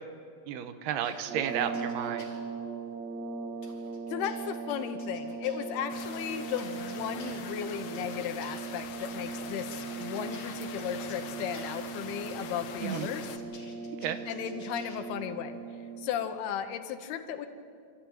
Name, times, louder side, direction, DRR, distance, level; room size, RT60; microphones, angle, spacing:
voice 1, 0.5-2.3 12.8-13.1 14.0-14.2, right 9 dB, 85° right, 10 dB, 3.0 m, -32 dB
sound 1, 1.0-2.4 3.6-5.6 6.6-8.6 9.7-11.7 12.9-15.0, left 4 dB, 35° left, 2.9 m, -53 dB
sound 2, 1.2-16.3, right 5 dB, 60° right, 2.2 m, -39 dB
voice 2, 4.1-13.3 14.3-17.5, left 9 dB, 80° left, 8 dB, 3.0 m, -35 dB
sound 3, 5.9-13.4, left 8 dB, 65° left, 2.4 m, -44 dB
27.0 x 14.0 x 9.1 m, 2.5 s
omnidirectional pair, 4.5 m